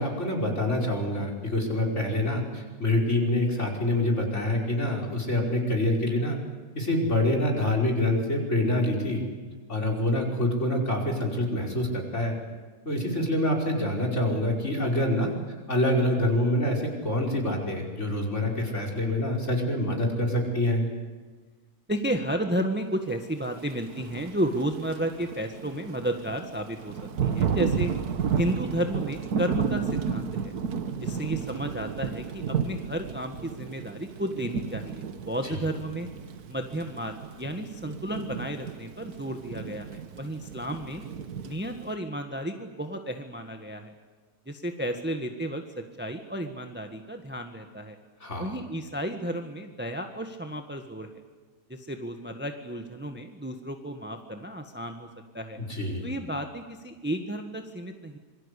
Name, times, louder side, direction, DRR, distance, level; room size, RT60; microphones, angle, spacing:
voice 1, 0.0-6.4 6.8-9.2 9.7-12.4 12.9-15.3 15.7-20.9 35.5-35.6 48.2-48.5 55.6-56.1, left 1 dB, 40° left, 0 dB, 5.5 m, -26 dB
voice 2, 21.9-27.9 28.4-30.5 31.0-36.1 36.5-41.0 41.4-43.9 44.4-48.0 48.4-51.1 51.7-55.1 55.3-55.6 56.0-58.2, right 1 dB, 5° right, 5 dB, 1.4 m, -32 dB
Thunder / Rain, 23.8-41.9, right 7 dB, 65° right, 1.7 m, -33 dB
27.0 x 23.5 x 8.4 m, 1.4 s
omnidirectional pair, 1.8 m